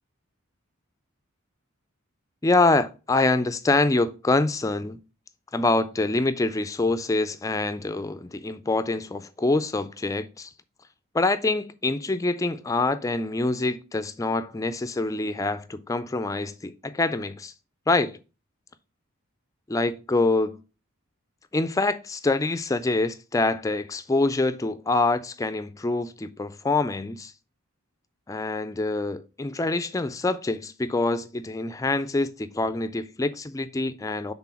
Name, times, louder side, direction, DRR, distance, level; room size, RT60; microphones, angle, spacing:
voice 1, 2.4-5.0 5.5-10.5 11.1-17.5 17.9-18.2 19.7-20.6 21.5-27.3 28.3-34.3, left 2 dB, 15° left, 0.3 m, -25 dB
6.0 x 3.7 x 5.8 m
head